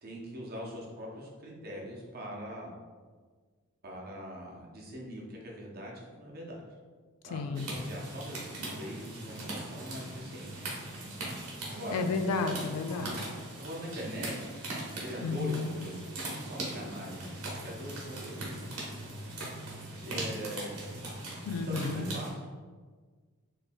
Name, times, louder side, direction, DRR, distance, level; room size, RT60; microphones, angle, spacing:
voice 1, 0.0-2.7 3.8-6.6 7.2-10.8 11.7-12.0 13.6-14.5 15.0-18.4 20.0-20.8 21.7-22.5, equal, 45° right, -2 dB, 0.7 m, -42 dB
voice 2, 7.3-7.7 11.9-13.3 15.2-15.7 21.5-22.1, left 4 dB, 90° left, 7 dB, 0.3 m, -32 dB
sound 1, 7.5-22.3, right 2 dB, 80° right, 1.0 m, -40 dB
4.3 x 3.1 x 2.2 m, 1.5 s
head